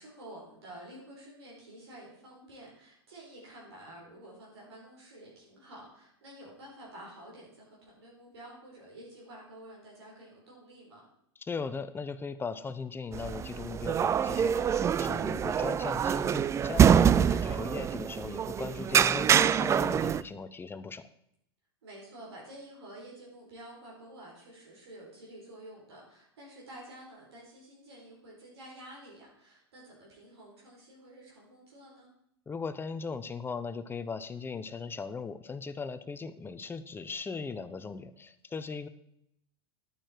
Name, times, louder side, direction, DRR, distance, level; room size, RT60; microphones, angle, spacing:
voice 1, 0.0-11.0 17.2-17.6 21.8-32.1, right 1 dB, 75° right, -4 dB, 4.7 m, -50 dB
voice 2, 11.4-21.0 32.5-38.9, left 5 dB, 15° left, 13 dB, 0.8 m, -38 dB
sound 1, 13.1-20.2, right 8 dB, 20° right, 0.4 m, -25 dB
12.0 x 8.9 x 4.6 m, 0.76 s
hypercardioid pair, 95°, 14 cm